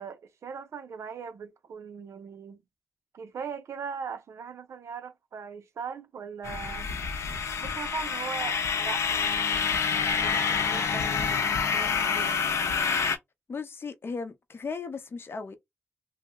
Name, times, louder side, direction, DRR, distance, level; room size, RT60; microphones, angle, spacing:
voice 1, 0.0-2.6 3.1-6.9 7.6-12.4, right 6 dB, 85° right, 0.5 m, -40 dB
sound 1, 6.4-13.2, left 6 dB, 90° left, 0.6 m, -27 dB
voice 2, 13.5-15.6, left 4 dB, 55° left, 0.7 m, -36 dB
2.8 x 2.0 x 3.5 m
wide cardioid pair, 90°, 5 cm